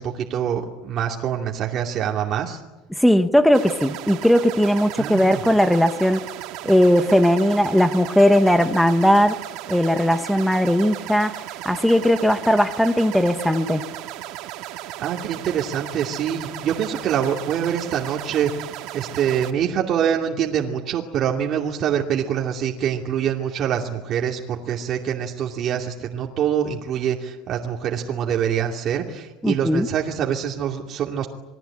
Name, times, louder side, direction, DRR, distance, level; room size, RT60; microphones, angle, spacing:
voice 1, 0.0-2.6 5.0-5.4 15.0-18.7 18.9-31.3, right 9 dB, 40° right, 0 dB, 2.6 m, -25 dB
voice 2, 2.9-6.2 6.6-9.4 9.7-11.4 11.6-13.8 29.4-29.9, equal, ahead, 8 dB, 1.1 m, -18 dB
sound 1, 3.5-19.5, right 14 dB, 65° right, 2.4 m, -35 dB
27.5 x 21.5 x 8.7 m, 1.1 s
cardioid pair, 145°, 0 cm